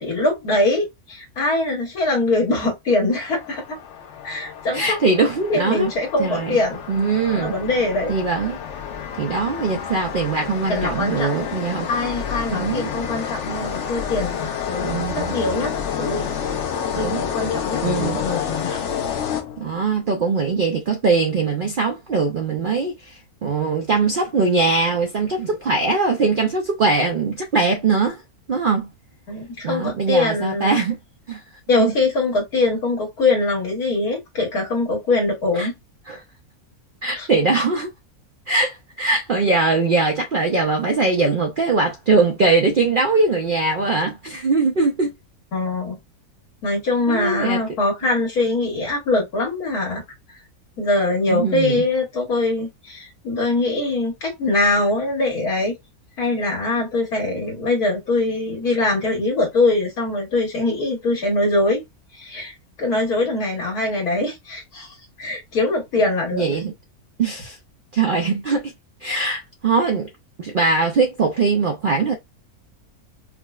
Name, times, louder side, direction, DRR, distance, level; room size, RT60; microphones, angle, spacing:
voice 1, 0.0-3.8 4.2-5.0 5.5-6.8 7.3-8.1 10.7-11.4 11.9-16.4 17.0-18.9 29.3-30.8 31.7-35.7 37.2-37.3 45.5-46.0 46.6-50.0 50.8-55.7 56.2-61.8 62.1-66.4, left 2 dB, 80° left, 1.6 m, -22 dB
sound 1, 3.1-19.9, left 8 dB, 60° left, 0.9 m, -29 dB
voice 2, 4.7-5.9 6.2-6.6 6.9-7.5 8.1-8.6 9.1-11.9 12.5-12.9 14.7-15.4 16.9-17.2 17.8-18.2 19.6-28.2 28.5-28.9 29.6-31.0 31.3-31.4 31.8-31.9 35.5-35.7 36.1-36.2 37.0-37.9 38.5-45.1 47.1-47.6 51.3-51.8 66.3-66.7 67.2-67.6 67.9-68.7 69.0-70.1 70.4-72.1, right 4 dB, 75° right, 0.4 m, -21 dB
4.8 x 2.0 x 2.3 m
omnidirectional pair, 1.6 m